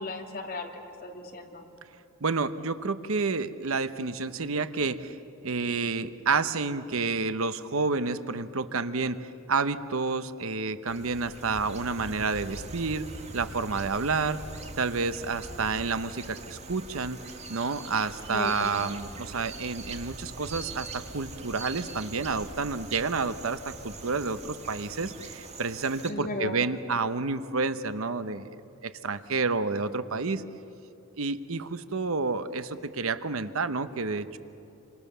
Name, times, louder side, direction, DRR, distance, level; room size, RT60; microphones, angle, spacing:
voice 1, 0.0-1.6 18.3-18.7 26.1-26.6, left 2 dB, 45° left, 2 dB, 2.7 m, -36 dB
voice 2, 2.2-5.2 5.4-13.1 13.3-14.4 14.8-17.2 17.5-28.5 28.8-30.4 31.2-34.4, right 4 dB, 70° right, 12 dB, 0.9 m, -29 dB
sound 1, 10.9-26.1, right 3 dB, 30° right, 1.8 m, -42 dB
27.0 x 27.0 x 6.9 m, 2.9 s
head